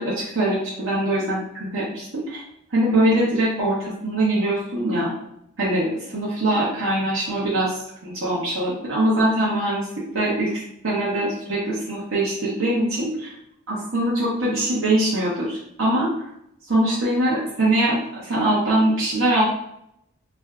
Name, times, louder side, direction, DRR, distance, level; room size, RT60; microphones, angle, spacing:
voice 1, 0.0-1.4 1.7-2.4 2.7-5.1 5.6-7.7 8.0-9.9 10.1-13.3 13.7-16.3 16.7-19.4, right 1 dB, 70° right, -8 dB, 0.9 m, -22 dB
2.5 x 2.2 x 3.5 m, 0.75 s
head